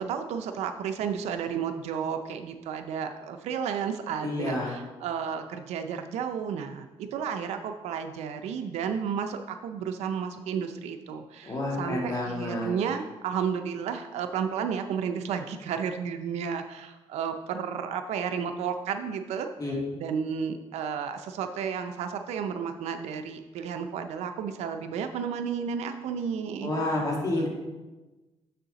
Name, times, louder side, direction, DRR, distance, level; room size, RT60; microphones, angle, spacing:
voice 1, 0.0-19.5 19.9-26.7, right 7 dB, 90° right, 6 dB, 0.5 m, -32 dB
voice 2, 4.2-4.8 11.4-12.7 19.6-19.7 26.6-27.5, left 1 dB, 35° left, -2 dB, 2.3 m, -29 dB
6.7 x 6.3 x 4.0 m, 1.1 s
cardioid pair, 95°, 11 cm